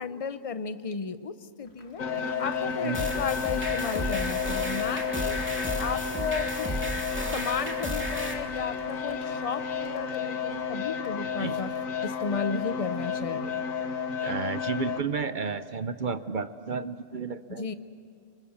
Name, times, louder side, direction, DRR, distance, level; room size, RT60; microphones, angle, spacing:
voice 1, 0.0-2.0 2.4-5.4 5.8-6.7 7.3-11.7 12.0-13.6 17.6-17.7, left 5 dB, 35° left, 12 dB, 0.7 m, -34 dB
Applause, 1.6-12.2, left 2 dB, 55° left, 2.3 m, -51 dB
sound 1, 2.0-15.0, left 6 dB, 80° left, 1.7 m, -31 dB
sound 2, 2.9-8.3, equal, 10° right, 2.6 m, -34 dB
voice 2, 14.2-17.7, right 5 dB, 45° right, 12 dB, 0.7 m, -32 dB
25.0 x 25.0 x 7.2 m, 2.6 s
omnidirectional pair, 1.4 m